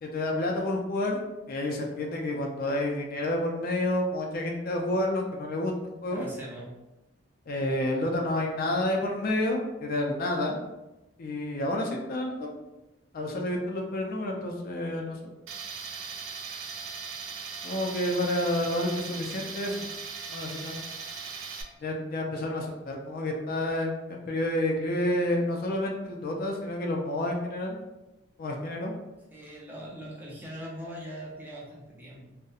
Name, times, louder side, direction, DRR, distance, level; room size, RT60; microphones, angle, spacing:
voice 1, 0.0-1.2 1.5-6.2 7.5-10.6 11.2-12.5 13.1-15.3 17.6-19.9 20.3-20.8 21.8-27.8 28.4-28.9, left 1 dB, 50° left, 0 dB, 0.4 m, -29 dB
voice 2, 6.1-6.7 7.6-7.8 29.3-32.4, equal, 10° right, -5 dB, 0.5 m, -41 dB
Tools, 15.5-21.6, right 5 dB, 80° right, 0.3 m, -39 dB
2.7 x 2.0 x 2.3 m, 1.0 s
head